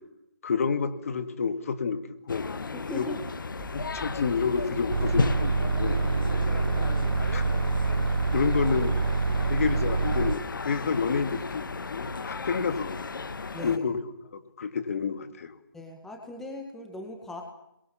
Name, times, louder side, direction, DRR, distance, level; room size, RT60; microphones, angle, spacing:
voice 1, 0.4-2.0 2.3-2.5 2.9-3.1 3.7-6.0 7.3-7.4 8.3-8.9 9.5-13.0 13.6-14.0 14.3-15.5, left 5 dB, 40° left, 9 dB, 2.5 m, -29 dB
sound 1, 2.3-13.8, left 4 dB, 70° left, 1.7 m, -35 dB
voice 2, 2.7-3.2 6.1-6.2 6.8-7.3 8.6-8.9 13.5-13.8 15.7-17.4, left 2 dB, 5° left, 2 dB, 1.8 m, -40 dB
sound 2, 3.6-9.4, right 1 dB, 30° right, 3.7 m, -41 dB
sound 3, 4.9-10.4, right 4 dB, 80° right, 1.7 m, -26 dB
29.5 x 23.0 x 7.2 m, 0.83 s
hypercardioid pair, 170°, 11 cm